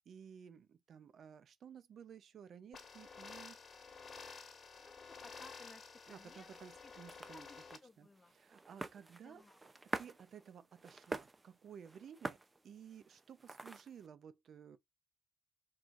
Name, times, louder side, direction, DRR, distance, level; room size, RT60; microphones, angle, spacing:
voice 1, 0.1-3.6 6.1-7.5 8.0-9.4 10.0-12.4 12.6-14.8, right 7 dB, 60° right, 0.6 m, -55 dB
sound 1, 2.7-7.8, left 5 dB, 45° left, 1.4 m, -52 dB
voice 2, 4.8-6.5 6.8-7.0 7.3-8.3 9.2-9.6, left 3 dB, 25° left, 0.9 m, -59 dB
sound 2, 6.0-14.1, right 3 dB, 20° right, 0.6 m, -48 dB
4.6 x 3.8 x 2.5 m
cardioid pair, 90°, 0 cm